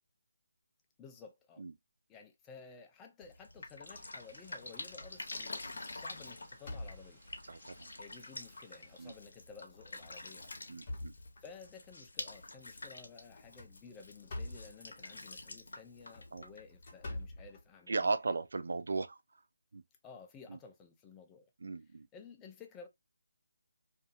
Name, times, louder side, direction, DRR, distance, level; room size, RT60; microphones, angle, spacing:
voice 1, 1.0-1.6 2.1-7.2 8.0-10.5 11.4-18.2 20.0-21.5 21.8-22.9, left 5 dB, 10° left, 0.4 m, -54 dB
Drip, 3.2-17.3, left 2 dB, 75° left, 0.7 m, -48 dB
sound 1, 3.9-9.2, right 1 dB, 15° right, 1.2 m, -65 dB
sound 2, 4.3-4.8 5.2-5.5 5.8-7.4 8.1-8.2 8.6-8.7 9.7-9.9 10.4-11.8 13.3-14.8 15.9-18.2, left 1 dB, 35° left, 0.9 m, -46 dB
voice 2, 7.5-7.9 9.0-9.1 10.7-11.1 16.3-16.4 17.9-19.2 19.7-19.8 20.5-20.6 21.6-22.1, right 3 dB, 65° right, 0.3 m, -36 dB
2.7 x 2.5 x 2.3 m
figure-of-eight pair, 165°, 0 cm